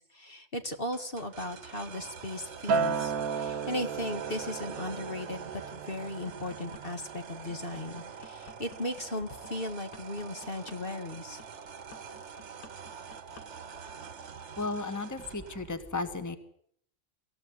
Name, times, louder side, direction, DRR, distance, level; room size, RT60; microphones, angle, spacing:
voice 1, 0.1-11.4, left 1 dB, 40° left, 6 dB, 1.9 m, -37 dB
sound 1, 0.9-15.8, right 6 dB, 55° right, 1.4 m, -45 dB
Acoustic guitar, 2.7-7.1 7.5-7.9, right 5 dB, 85° right, 1.6 m, -34 dB
sound 2, 6.0-6.8 7.3-13.5 13.7-14.0, left 4 dB, 70° left, 2.2 m, -52 dB
voice 2, 14.6-16.4, left 3 dB, 15° left, 8 dB, 1.6 m, -34 dB
25.0 x 14.5 x 9.6 m, 0.69 s
omnidirectional pair, 1.5 m